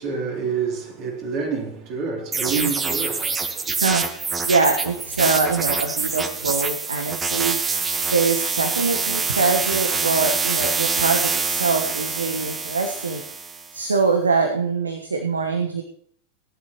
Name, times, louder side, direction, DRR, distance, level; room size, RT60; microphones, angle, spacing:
voice 1, 0.0-3.8, right 5 dB, 40° right, 3.6 m, -28 dB
sound 1, 2.3-13.7, right 4 dB, 15° right, 1.4 m, -25 dB
voice 2, 3.8-4.2 4.5-7.6 8.0-13.2 13.7-15.8, right 4 dB, 75° right, 1.3 m, -23 dB
18.5 x 10.5 x 3.0 m
figure-of-eight pair, 90°, 0 cm